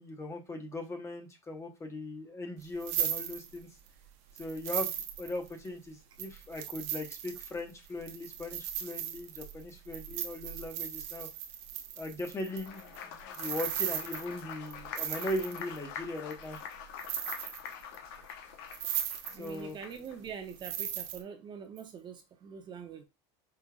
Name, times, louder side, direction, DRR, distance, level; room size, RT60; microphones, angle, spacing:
voice 1, 0.0-3.7 4.3-4.9 5.2-11.3 12.0-16.6 19.3-19.8, left 1 dB, 20° left, 1.3 m, -39 dB
sound 1, 2.6-3.9 4.4-5.7 6.2-15.8 16.3-16.7 17.0-18.0 18.3-18.4 18.7-19.6 19.9-21.2, right 10 dB, 65° right, 0.9 m, -37 dB
Applause, 12.4-20.2, left 8 dB, 65° left, 1.0 m, -45 dB
voice 2, 19.3-23.0, right 7 dB, 35° right, 0.9 m, -44 dB
5.3 x 3.5 x 2.4 m
supercardioid pair, 110°, 14 cm